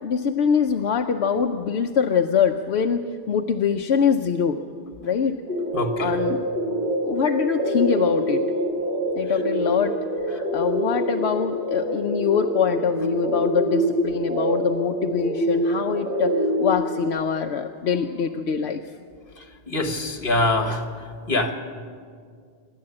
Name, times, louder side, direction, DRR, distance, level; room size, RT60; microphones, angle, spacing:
voice 1, 0.0-4.6 5.0-5.4 6.0-6.4 7.0-8.4 9.1-16.3 16.6-18.8, left 7 dB, 80° left, 4 dB, 1.0 m, -24 dB
sound 1, 5.5-16.7, equal, 40° right, 3.5 m, -25 dB
voice 2, 5.7-6.2 19.7-20.8 21.3-21.6, left 2 dB, 55° left, 6 dB, 1.8 m, -24 dB
26.0 x 11.5 x 8.7 m, 2.1 s
omnidirectional pair, 1.1 m